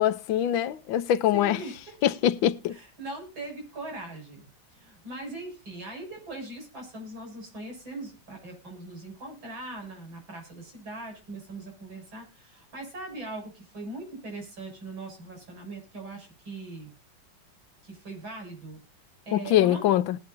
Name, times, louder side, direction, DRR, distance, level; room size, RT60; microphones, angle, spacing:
voice 1, 0.0-1.6 2.0-2.8 19.3-20.2, left 11 dB, 80° left, 1.5 m, -23 dB
voice 2, 1.3-2.0 2.7-4.5 4.7-16.9 17.8-18.8 19.3-19.9, right 2 dB, 80° right, 7.8 m, -40 dB
20.5 x 8.7 x 2.7 m
omnidirectional pair, 2.1 m